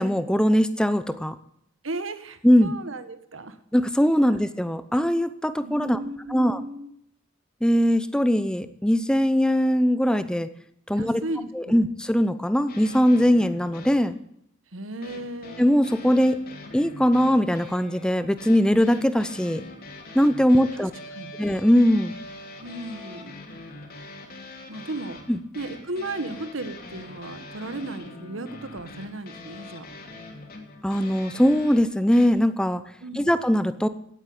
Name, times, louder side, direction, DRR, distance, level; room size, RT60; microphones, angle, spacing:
voice 1, 0.0-1.3 2.4-2.7 3.7-6.0 6.3-6.6 7.6-10.5 10.9-11.2 11.5-14.2 15.6-16.4 16.7-19.6 20.1-20.9 21.4-22.2 25.3-25.4 30.8-32.8 33.1-33.9, equal, 5° left, 13 dB, 0.7 m, -21 dB
voice 2, 1.8-3.6 4.3-4.4 5.6-6.9 11.0-11.8 14.7-15.6 20.5-20.9 21.1-21.5 22.6-23.4 24.7-25.2 25.5-29.9 33.0-33.3, right 2 dB, 90° right, 11 dB, 1.5 m, -35 dB
sound 1, 12.7-14.1 15.0-32.3, left 2 dB, 50° left, 3.0 m, -43 dB
17.5 x 8.4 x 8.5 m, 0.71 s
head